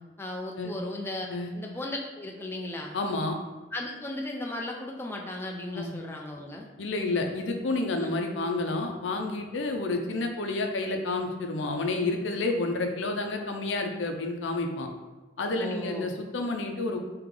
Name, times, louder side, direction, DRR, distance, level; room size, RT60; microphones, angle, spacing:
voice 1, 0.2-1.3 1.5-3.0 3.7-6.7 8.0-8.1 15.6-16.1, left 1 dB, 10° left, 0 dB, 0.4 m, -36 dB
voice 2, 2.9-3.4 5.7-5.9 6.8-14.9 15.4-17.0, left 2 dB, 85° left, 4 dB, 0.6 m, -30 dB
3.7 x 2.9 x 4.8 m, 1.2 s
head